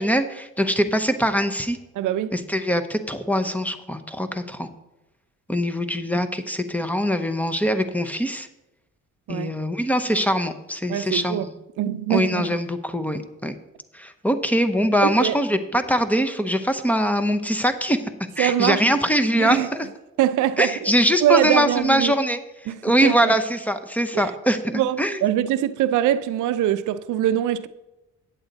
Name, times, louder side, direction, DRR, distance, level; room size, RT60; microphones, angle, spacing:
voice 1, 0.0-1.8 2.3-4.7 5.5-8.5 9.3-11.5 12.1-13.6 13.9-18.0 18.4-19.9 20.6-22.4 22.8-25.2, equal, 5° left, 0.7 m, -22 dB
voice 2, 2.0-2.3 9.3-9.5 10.9-11.5 11.8-12.6 15.0-15.4 18.4-18.9 19.4-19.7 20.2-20.9 21.2-22.1 22.7-23.3 24.1-24.3 24.7-27.7, right 12 dB, 80° right, 0.5 m, -23 dB
9.0 x 7.9 x 4.0 m
cardioid pair, 90°, 30 cm